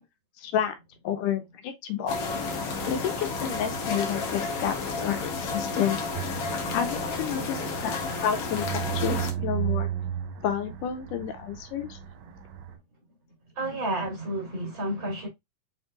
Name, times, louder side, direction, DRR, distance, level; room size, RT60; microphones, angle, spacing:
voice 1, 0.4-0.8 1.0-2.2 2.9-6.0 6.7-9.9 10.4-12.0, left 9 dB, 80° left, 2.3 m, -30 dB
sound 1, 2.1-9.3, left 3 dB, 65° left, 1.6 m, -31 dB
sound 2, 6.2-12.8, right 11 dB, 75° right, 2.3 m, -34 dB
voice 2, 13.6-15.3, right 1 dB, 40° right, 2.5 m, -31 dB
5.1 x 4.4 x 2.3 m
omnidirectional pair, 3.8 m